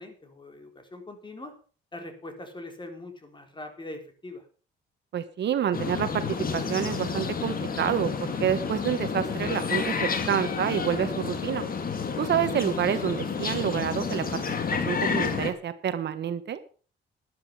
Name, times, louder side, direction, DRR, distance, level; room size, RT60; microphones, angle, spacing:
voice 1, 0.0-1.5 1.9-4.4, left 2 dB, 25° left, 6 dB, 4.1 m, -42 dB
voice 2, 5.1-11.6 12.2-14.4 14.7-16.6, right 9 dB, 60° right, 11 dB, 1.2 m, -28 dB
sound 1, 5.7-15.5, left 5 dB, 45° left, 2.5 m, -30 dB
12.5 x 10.5 x 5.5 m, 0.40 s
cardioid pair, 90°, 20 cm